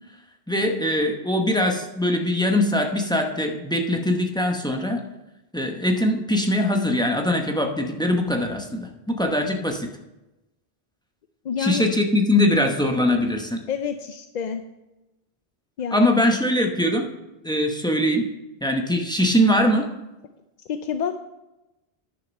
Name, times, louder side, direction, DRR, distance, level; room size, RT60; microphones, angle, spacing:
voice 1, 0.5-5.0 5.5-9.9 11.6-13.6 15.9-17.1 17.4-18.3 18.6-19.9, left 1 dB, 5° left, 3 dB, 0.8 m, -22 dB
voice 2, 11.4-11.8 13.7-14.6 15.8-16.1 20.7-21.2, left 7 dB, 55° left, 8 dB, 0.5 m, -28 dB
10.5 x 6.5 x 5.3 m, 1.0 s
omnidirectional pair, 1.1 m